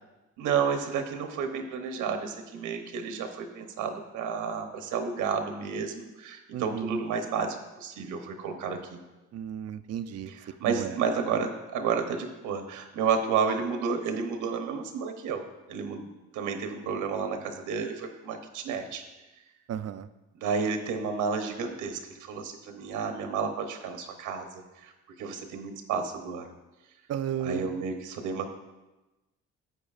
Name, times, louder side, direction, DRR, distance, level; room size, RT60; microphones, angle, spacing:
voice 1, 0.4-9.0 10.3-15.4 15.7-16.1 16.3-19.0 20.4-24.9 25.2-26.5 27.4-28.5, right 6 dB, 90° right, 5 dB, 0.9 m, -31 dB
voice 2, 6.5-7.0 9.3-10.3 10.6-11.0 19.7-20.1 27.1-27.7, right 9 dB, 55° right, 12 dB, 0.5 m, -33 dB
10.0 x 8.1 x 2.4 m, 1.1 s
cardioid pair, 90°, 30 cm